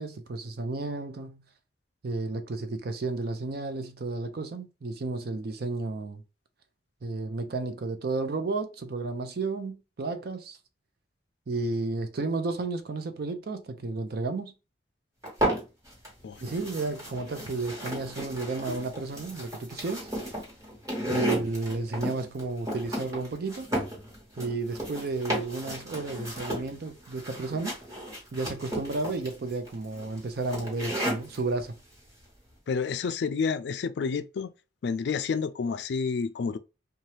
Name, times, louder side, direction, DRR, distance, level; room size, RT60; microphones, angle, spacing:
voice 1, 0.0-1.4 2.0-6.2 7.0-10.6 11.5-14.5 16.4-20.1 21.1-23.7 24.4-27.8 28.3-31.8, right 3 dB, 55° right, 0.5 m, -32 dB
sound 1, 15.2-16.1 16.4-31.4, right 1 dB, 20° right, 1.1 m, -34 dB
voice 2, 32.7-34.5 34.8-36.6, left 5 dB, 65° left, 0.3 m, -29 dB
2.8 x 2.3 x 3.1 m
head